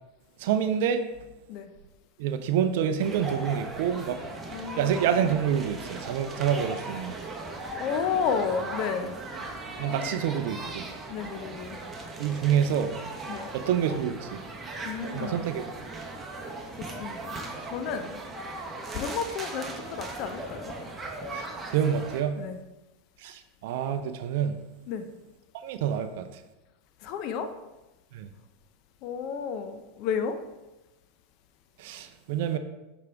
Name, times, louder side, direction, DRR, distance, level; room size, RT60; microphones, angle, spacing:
voice 1, 0.4-1.0 2.2-4.2 4.8-7.2 9.8-10.9 12.2-12.9 13.5-14.4 15.1-15.6 21.3-22.4 23.2-24.6 25.6-26.4 28.1-28.3 31.8-32.6, right 8 dB, 65° right, 10 dB, 0.4 m, -27 dB
sound 1, 3.0-22.2, right 2 dB, 20° right, 1.1 m, -38 dB
voice 2, 4.5-5.0 7.8-9.1 11.1-11.8 13.3-13.4 14.8-15.5 16.8-17.4 17.6-18.2 18.9-20.8 22.4-22.6 24.9-25.1 27.0-27.5 29.0-30.4, left 6 dB, 55° left, 8 dB, 0.6 m, -32 dB
6.6 x 4.8 x 3.5 m, 1.0 s
hypercardioid pair, 90°, 0 cm